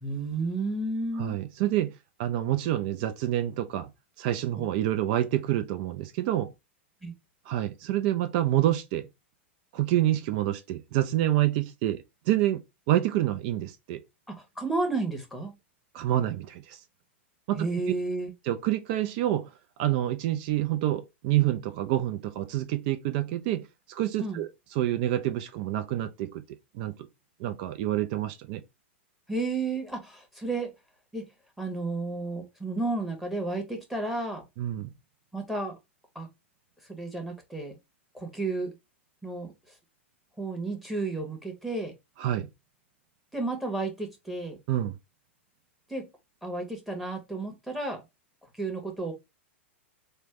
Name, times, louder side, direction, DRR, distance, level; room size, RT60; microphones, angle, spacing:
voice 1, 0.0-1.4 4.6-4.7 7.0-7.1 14.3-15.6 17.5-18.3 24.2-24.4 29.3-30.7 31.1-31.3 31.6-34.4 35.3-35.8 36.1-36.3 36.9-37.8 38.1-38.7 39.2-39.5 40.4-41.9 43.3-44.6 45.9-46.1 46.4-48.0 48.6-49.1, right 3 dB, ahead, 1.1 m, -32 dB
voice 2, 1.2-1.9 2.2-3.9 4.2-6.5 7.5-9.1 9.7-12.6 12.9-14.0 15.9-16.8 17.5-17.7 18.5-19.5 19.8-24.5 24.7-26.4 26.7-26.9 27.4-28.6 34.6-34.9 42.2-42.5 44.7-44.9, right 13 dB, 45° right, 0.4 m, -27 dB
3.2 x 2.1 x 3.2 m
figure-of-eight pair, 100°, 7 cm